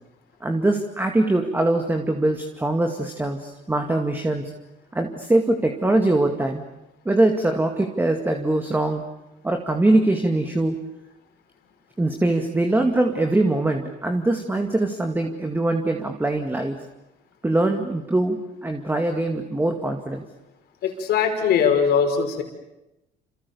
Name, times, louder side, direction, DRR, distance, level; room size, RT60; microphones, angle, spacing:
voice 1, 0.4-4.5 4.9-6.6 7.1-9.0 9.4-10.8 12.0-16.8 17.4-20.2, right 2 dB, 10° right, 4 dB, 2.2 m, -22 dB
voice 2, 20.8-22.4, left 7 dB, 70° left, 5 dB, 5.3 m, -20 dB
28.0 x 27.5 x 7.1 m, 0.94 s
cardioid pair, 110°, 17 cm